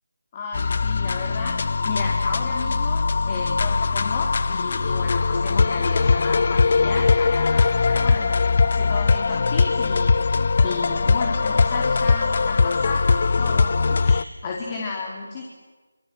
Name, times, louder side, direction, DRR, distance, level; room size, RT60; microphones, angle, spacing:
voice 1, 0.3-1.6 1.8-15.4, left 4 dB, 25° left, -1 dB, 4.1 m, -33 dB
sound 1, 0.5-14.2, left 4 dB, 45° left, 0.8 m, -21 dB
26.5 x 26.0 x 8.0 m, 1.3 s
figure-of-eight pair, 165°, 0 cm